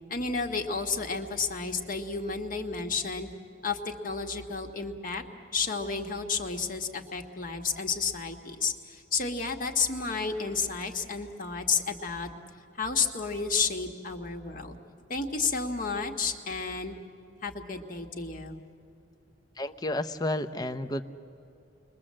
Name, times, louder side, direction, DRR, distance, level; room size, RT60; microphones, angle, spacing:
voice 1, 0.1-3.3 3.6-5.2 5.5-12.3 12.8-14.8 15.1-16.9 17.4-18.6, left 4 dB, 50° left, 4 dB, 1.7 m, -31 dB
voice 2, 19.6-21.0, left 1 dB, 20° left, 10 dB, 0.7 m, -31 dB
29.5 x 22.0 x 7.6 m, 2.5 s
head